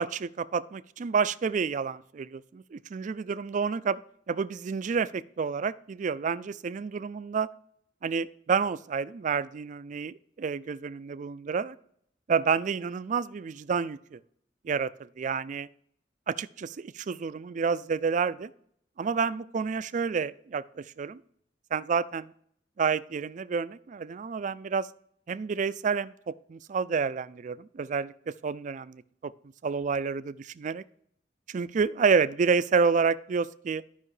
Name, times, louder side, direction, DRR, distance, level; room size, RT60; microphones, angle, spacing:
voice 1, 0.0-4.0 4.3-7.5 8.0-11.7 12.3-14.2 14.6-15.7 16.3-18.5 19.0-21.2 21.7-22.2 22.8-24.9 25.3-29.3 29.6-30.8 31.5-33.8, right 5 dB, 45° right, 15 dB, 0.4 m, -29 dB
13.0 x 5.4 x 3.2 m, 0.67 s
head